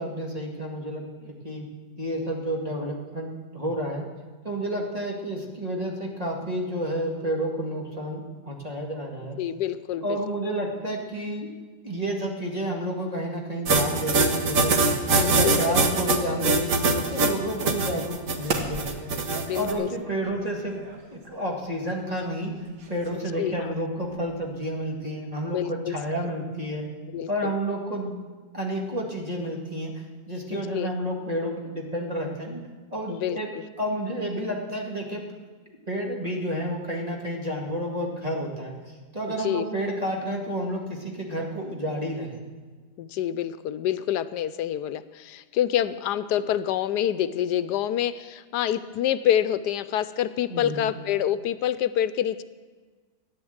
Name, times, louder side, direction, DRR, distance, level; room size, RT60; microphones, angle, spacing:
voice 1, 0.0-1.6 2.0-4.1 4.4-9.4 10.0-11.5 11.8-15.0 15.4-19.1 19.5-20.7 21.1-22.5 22.9-26.8 27.3-28.1 28.5-29.9 30.3-32.6 32.9-33.5 33.8-35.2 35.9-38.7 39.1-42.5 50.5-50.8, equal, 25° right, 0 dB, 2.1 m, -30 dB
voice 2, 9.4-10.2 15.1-16.0 19.4-19.9 23.1-23.7 25.5-26.3 27.1-27.5 30.5-30.9 33.1-33.6 39.4-39.7 43.0-52.4, left 11 dB, 80° left, 14 dB, 1.2 m, -27 dB
sound 1, 13.7-19.7, right 3 dB, 55° right, 1.6 m, -23 dB
sound 2, 16.4-24.9, right 3 dB, 85° right, 2.0 m, -40 dB
13.5 x 9.7 x 8.0 m, 1.4 s
omnidirectional pair, 1.8 m